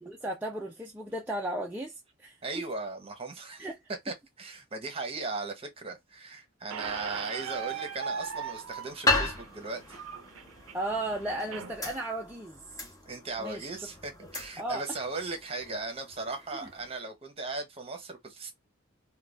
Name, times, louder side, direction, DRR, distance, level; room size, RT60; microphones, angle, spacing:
voice 1, 0.0-2.6 3.6-3.8 5.2-5.3 10.7-12.9 13.4-13.9 14.6-14.8, right 1 dB, 10° right, 0.3 m, -35 dB
voice 2, 2.4-3.7 4.0-10.0 13.1-18.5, right 3 dB, 30° right, 0.8 m, -37 dB
Squeak, 6.7-11.7, right 7 dB, 85° right, 0.5 m, -39 dB
sound 1, 6.8-17.0, left 2 dB, 15° left, 0.8 m, -37 dB
2.5 x 2.2 x 3.2 m
head